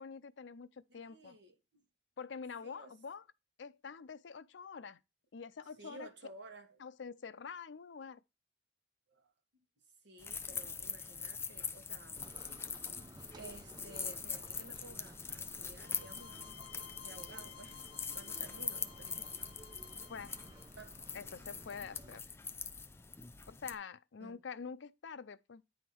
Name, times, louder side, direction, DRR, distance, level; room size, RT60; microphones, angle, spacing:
voice 1, 0.0-1.4 2.2-3.2 3.6-5.0 5.3-6.1 6.8-8.2 20.1-20.4 21.1-22.2 23.5-25.6, left 6 dB, 75° left, 0.5 m, -46 dB
voice 2, 0.9-1.8 2.6-3.0 5.7-6.8 9.1-9.3 10.0-12.2 13.4-16.4 17.0-17.8 18.1-19.3 20.8-20.9 24.2-24.4, right 2 dB, 65° right, 1.5 m, -54 dB
sound 1, 10.2-23.7, left 5 dB, 15° left, 0.4 m, -43 dB
sound 2, 12.2-22.2, right 2 dB, 25° right, 0.7 m, -57 dB
sound 3, 15.8-20.7, left 9 dB, 55° left, 1.5 m, -56 dB
9.3 x 3.6 x 4.5 m
head